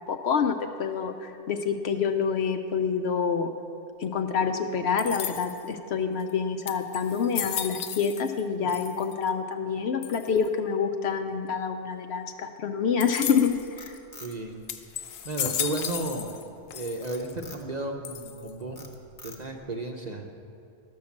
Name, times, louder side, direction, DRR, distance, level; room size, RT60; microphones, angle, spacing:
voice 1, 0.1-3.5 4.0-14.0, left 6 dB, 65° left, 7 dB, 0.8 m, -27 dB
sound 1, 5.0-5.7 6.3-6.4 6.7-8.4 8.7-9.3 10.0-10.5 13.0-13.7 14.2-14.3 14.7-16.4 16.7-17.3 18.0-18.6, left 9 dB, 90° left, 1.0 m, -34 dB
Frog, 13.5-15.0 15.4-16.2 17.0-17.7 18.2-18.4 18.8-19.7, left 2 dB, 30° left, 1.0 m, -46 dB
voice 2, 14.2-16.3 16.7-18.9 19.2-20.4, right 2 dB, 40° right, 2 dB, 0.7 m, -34 dB
12.0 x 6.2 x 7.2 m, 2.5 s
omnidirectional pair, 1.3 m